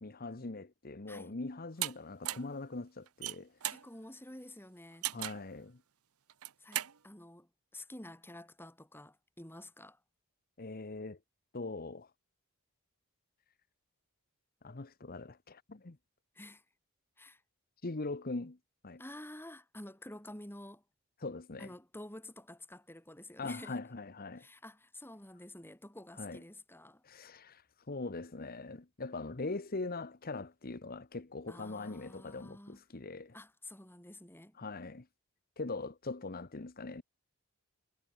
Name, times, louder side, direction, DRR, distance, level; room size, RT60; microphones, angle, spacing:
voice 1, 0.0-3.5 5.1-5.8 10.6-11.2 11.5-12.1 14.6-16.0 17.8-18.6 18.8-19.0 21.2-21.7 23.4-24.5 26.2-26.4 27.0-27.6 27.9-33.3 34.6-35.1 35.6-37.0, left 3 dB, 40° left, 1.0 m, -41 dB
sound 1, 1.8-1.9 2.3-2.5 3.1-3.9 5.0-5.5 6.3-6.9, right 14 dB, 75° right, 0.9 m, -36 dB
voice 2, 3.7-5.1 6.6-10.0 16.3-16.6 17.2-17.4 19.0-20.8 21.6-23.8 24.4-27.0 31.5-32.8 33.3-34.6, left 1 dB, 10° left, 5.8 m, -50 dB
head